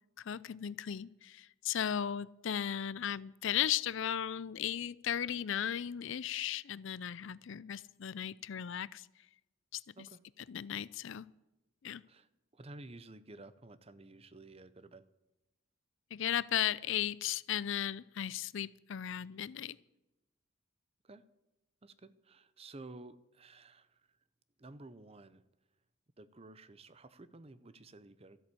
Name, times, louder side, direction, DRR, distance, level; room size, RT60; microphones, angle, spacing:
voice 1, 0.2-9.1 9.7-10.1 10.5-11.3 11.8-12.0 16.1-19.8, left 10 dB, 60° left, 20 dB, 0.4 m, -36 dB
voice 2, 12.1-15.0 21.0-21.2 21.8-24.0 24.6-25.4 26.2-28.4, right 2 dB, 30° right, 15 dB, 0.6 m, -53 dB
13.5 x 8.8 x 8.4 m, 0.95 s
head